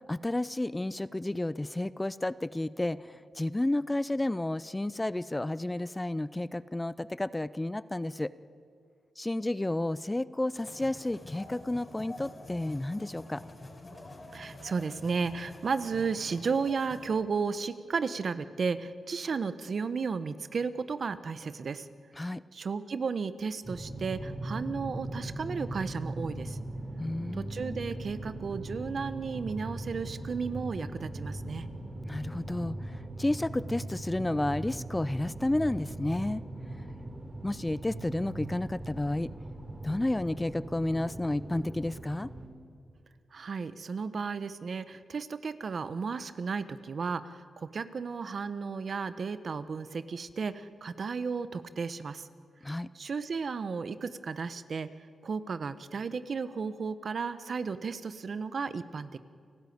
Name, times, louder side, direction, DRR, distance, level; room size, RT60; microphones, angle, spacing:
voice 1, 0.1-8.3 9.2-13.4 22.2-22.4 27.0-27.8 32.1-36.4 37.4-39.3 39.8-42.3 52.6-52.9, left 1 dB, 15° left, 17 dB, 0.5 m, -31 dB
sound 1, 10.6-17.0, left 2 dB, 35° left, 4.4 m, -47 dB
voice 2, 14.3-21.9 22.5-26.6 27.3-31.7 43.3-52.3 52.9-54.9 55.2-59.2, right 5 dB, 60° right, 13 dB, 1.0 m, -34 dB
sound 2, 23.6-42.5, right 1 dB, 20° right, 6.3 m, -40 dB
29.5 x 14.0 x 9.4 m, 2.3 s
cardioid pair, 70°, 0 cm